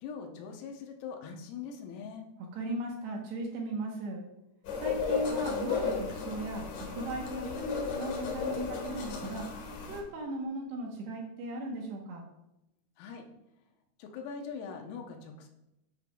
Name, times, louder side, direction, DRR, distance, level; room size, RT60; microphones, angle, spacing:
voice 1, 0.0-2.3 13.0-13.3 14.0-15.5, left 6 dB, 90° left, 3 dB, 3.7 m, -42 dB
voice 2, 2.5-4.2 4.8-9.6 9.9-12.3, right 1 dB, 70° right, 0 dB, 2.9 m, -37 dB
sound 1, 4.7-10.0, left 5 dB, 70° left, 2.0 m, -34 dB
10.0 x 9.7 x 2.4 m, 0.88 s
omnidirectional pair, 5.9 m